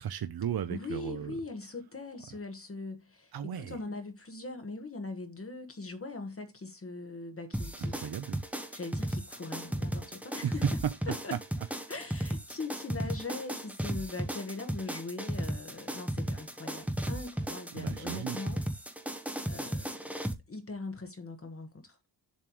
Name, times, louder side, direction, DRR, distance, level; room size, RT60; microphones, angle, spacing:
voice 1, 0.0-1.4 3.3-3.8 7.9-8.4 10.4-10.7 11.3-11.4 17.7-18.4, right 9 dB, 60° right, 0.7 m, -34 dB
voice 2, 0.7-8.0 8.5-10.6 11.1-11.4 11.9-18.6 19.5-20.1 20.5-22.0, left 3 dB, 30° left, 1.3 m, -41 dB
sound 1, 7.5-20.3, right 1 dB, 5° right, 1.0 m, -35 dB
7.3 x 3.2 x 6.2 m
wide cardioid pair, 140°, 42 cm